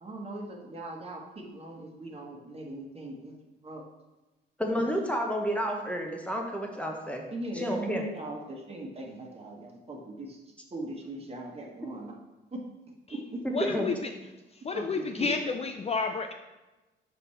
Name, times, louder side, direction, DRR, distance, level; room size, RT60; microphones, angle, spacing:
voice 1, 0.0-3.3 3.6-3.8 7.3-10.4 10.7-12.2 12.5-12.6 13.1-13.4 14.7-15.4, right 2 dB, 30° right, 0 dB, 1.3 m, -39 dB
voice 2, 4.6-7.2 7.5-8.0 13.4-14.0, equal, 5° left, 1 dB, 0.8 m, -30 dB
voice 3, 13.5-13.9 14.7-16.3, left 4 dB, 30° left, 5 dB, 0.4 m, -30 dB
5.4 x 4.1 x 4.3 m, 1.1 s
cardioid pair, 90°, 20 cm